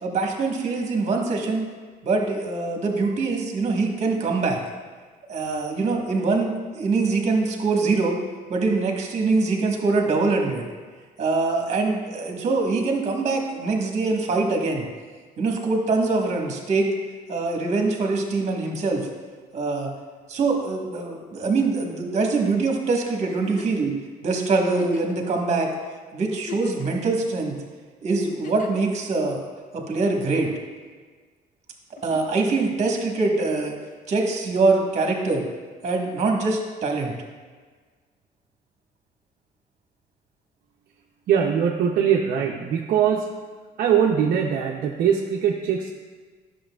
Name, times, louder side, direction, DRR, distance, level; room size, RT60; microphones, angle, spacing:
voice 1, 0.0-1.7 2.0-4.6 5.3-8.2 8.5-10.6 11.2-14.8 15.4-16.9 17.3-19.1 19.5-19.9 20.3-23.9 24.2-25.7 26.1-27.6 28.0-29.4 29.7-30.5 32.0-33.8 34.1-35.4 35.8-37.1, right 3 dB, 40° right, 1 dB, 1.3 m, -23 dB
Giggle, 23.3-23.9 24.7-25.2 25.8-25.9 26.3-27.1 28.2-28.9 30.0-30.7 32.0-32.4 33.9-34.0, left 6 dB, 50° left, 0.6 m, -40 dB
voice 2, 41.3-43.3 43.8-45.9, right 8 dB, 60° right, 0 dB, 0.6 m, -21 dB
10.0 x 6.5 x 2.3 m, 1.5 s
cardioid pair, 110°, 17 cm